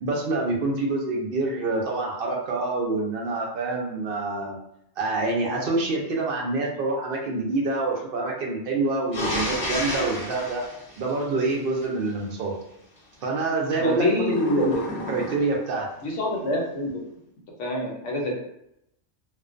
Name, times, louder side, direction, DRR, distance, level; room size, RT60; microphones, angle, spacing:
voice 1, 0.0-4.6 5.0-10.6 11.0-12.5 13.2-14.8 15.1-15.9, right 3 dB, 60° right, -1 dB, 0.7 m, -26 dB
sound 1, 9.1-11.8 14.2-15.7, left 1 dB, 35° left, 0.7 m, -31 dB
voice 2, 13.8-14.8 16.0-17.0 17.6-18.4, left 1 dB, 80° left, -1 dB, 1.0 m, -26 dB
2.4 x 2.1 x 2.4 m, 0.79 s
omnidirectional pair, 1.2 m